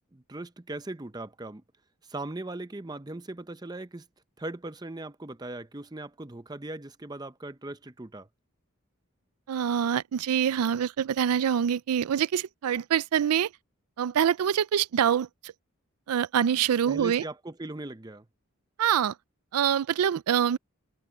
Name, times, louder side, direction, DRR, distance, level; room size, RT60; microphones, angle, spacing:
voice 1, 0.1-1.6 2.1-4.1 4.4-8.3 16.8-18.3, right 2 dB, 20° right, 0.6 m, -39 dB
voice 2, 9.5-13.5 14.0-15.5 16.1-17.2 18.8-19.1 19.5-20.6, right 8 dB, 90° right, 0.4 m, -25 dB
head